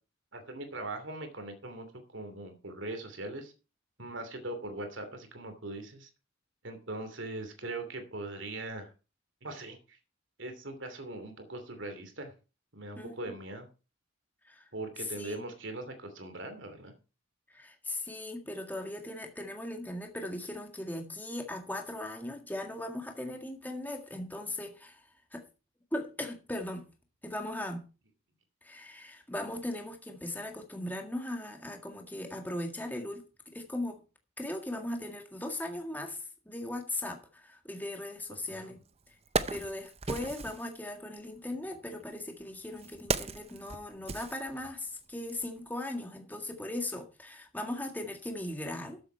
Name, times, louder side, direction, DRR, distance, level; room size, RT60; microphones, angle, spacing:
voice 1, 0.3-1.9 2.1-3.5 4.0-6.1 6.6-8.9 9.4-10.0 10.4-12.3 12.7-13.7 14.7-16.9 38.5-38.7, right 2 dB, 65° right, 2.8 m, -40 dB
voice 2, 15.0-15.4 17.5-25.4 25.9-26.9 27.2-27.9 28.6-34.0 34.4-38.8 39.5-49.0, left 1 dB, 10° left, 1.8 m, -38 dB
Wood, 38.5-38.6 39.0-40.7 41.6-45.0 45.3-45.4, right 4 dB, 30° right, 0.6 m, -36 dB
13.5 x 8.0 x 4.6 m
head